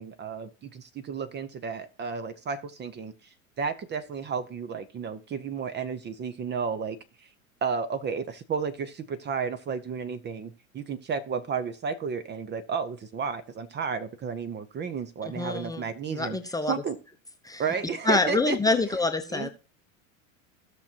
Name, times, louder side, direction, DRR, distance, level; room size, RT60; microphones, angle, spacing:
voice 1, 0.0-3.1 3.6-7.0 7.6-16.4 16.7-17.0 17.6-18.6 19.3-19.5, right 5 dB, 25° right, 12 dB, 0.8 m, -32 dB
voice 2, 15.2-16.8 17.4-17.6 18.0-19.5, left 3 dB, 10° left, 6 dB, 0.8 m, -27 dB
16.0 x 6.1 x 2.9 m, 0.35 s
hypercardioid pair, 100°, 42 cm